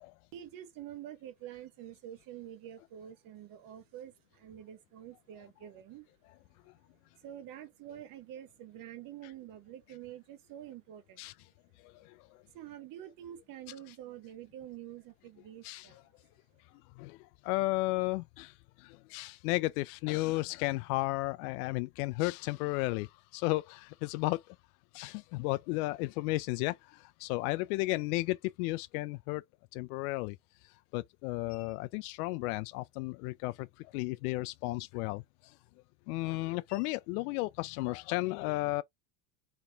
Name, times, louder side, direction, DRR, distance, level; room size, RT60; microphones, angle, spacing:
voice 1, 0.3-6.1 7.2-11.3 12.5-16.0, right 11 dB, 45° right, 1.2 m, -47 dB
voice 2, 11.8-12.4 15.6-15.9 17.0-24.6 24.9-29.4 29.7-30.4 30.6-35.5 36.1-38.8, left 21 dB, 75° left, 0.5 m, -34 dB
4.2 x 3.3 x 3.5 m
supercardioid pair, 135°, 45 cm